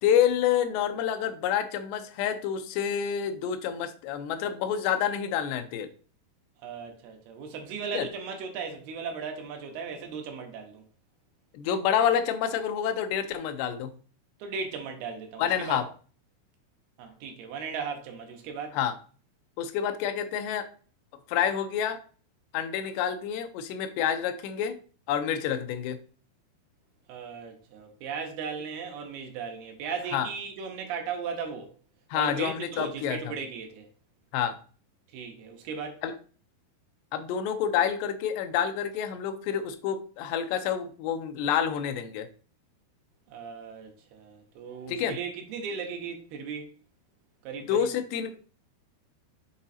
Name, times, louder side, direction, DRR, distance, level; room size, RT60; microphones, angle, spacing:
voice 1, 0.0-5.9 7.9-8.1 11.5-14.0 15.4-15.9 18.7-18.9 19.6-20.7 21.3-22.0 22.5-24.8 25.1-26.0 30.1-30.3 32.1-33.2 34.3-34.6 36.0-36.1 37.1-42.3 44.9-45.2 47.7-48.4, left 9 dB, 85° left, 2.8 m, -28 dB
voice 2, 6.6-10.8 14.4-15.8 17.0-18.8 27.1-31.7 32.1-33.9 35.1-36.0 43.3-46.7 47.4-47.9, right 5 dB, 75° right, 2.9 m, -37 dB
7.3 x 3.9 x 4.2 m
omnidirectional pair, 4.8 m